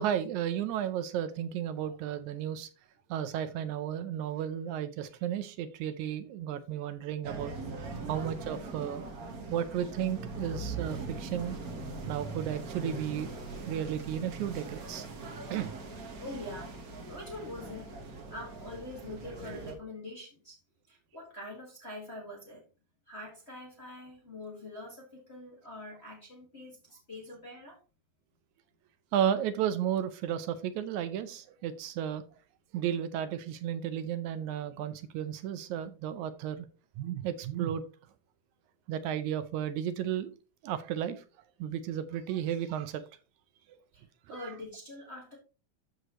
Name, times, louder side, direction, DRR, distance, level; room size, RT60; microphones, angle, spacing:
voice 1, 0.0-2.7 3.1-7.5 8.1-9.1 9.5-11.6 12.1-13.3 13.7-15.1 15.5-15.7 29.1-32.2 32.7-36.7 37.0-37.8 38.9-40.3 40.6-41.2 41.6-43.0 44.3-44.5, right 10 dB, 80° right, 1.9 m, -33 dB
sound 1, 7.2-19.7, right 3 dB, 60° right, 0.9 m, -41 dB
voice 2, 16.2-16.8 17.1-20.6 20.9-22.6 23.1-27.8 43.9-45.4, left 1 dB, 25° left, 1.6 m, -44 dB
12.5 x 4.7 x 3.0 m
omnidirectional pair, 3.6 m